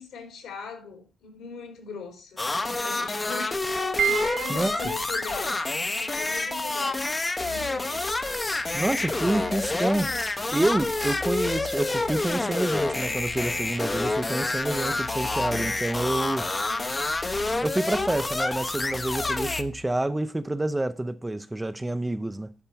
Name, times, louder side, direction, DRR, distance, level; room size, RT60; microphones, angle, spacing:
voice 1, 0.0-7.1 7.4-8.0 16.5-17.0, left 5 dB, 80° left, 3.5 m, -40 dB
sound 1, 2.4-19.6, left 2 dB, 20° left, 0.7 m, -28 dB
sound 2, 4.0-18.4, right 9 dB, 65° right, 0.9 m, -39 dB
sound 3, 7.4-19.9, left 6 dB, 60° left, 2.0 m, -44 dB
voice 2, 8.7-10.1 10.5-16.5 17.6-22.5, right 1 dB, 15° right, 0.5 m, -28 dB
11.0 x 4.5 x 5.6 m
cardioid pair, 90°, 0 cm